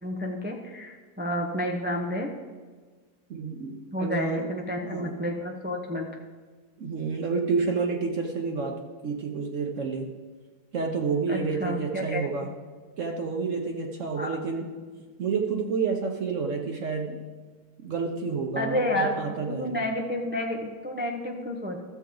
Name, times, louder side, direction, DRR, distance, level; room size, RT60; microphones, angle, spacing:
voice 1, 0.0-2.3 3.9-6.1 11.3-12.2 14.2-14.4 18.5-19.2 19.5-21.8, left 1 dB, 15° right, 1 dB, 0.4 m, -30 dB
voice 2, 3.3-4.5 4.8-5.2 6.8-10.1 10.7-12.5 13.0-14.7 15.2-17.2 17.8-19.8, right 4 dB, 55° right, 1 dB, 1.1 m, -29 dB
13.5 x 7.2 x 3.8 m, 1.4 s
omnidirectional pair, 1.7 m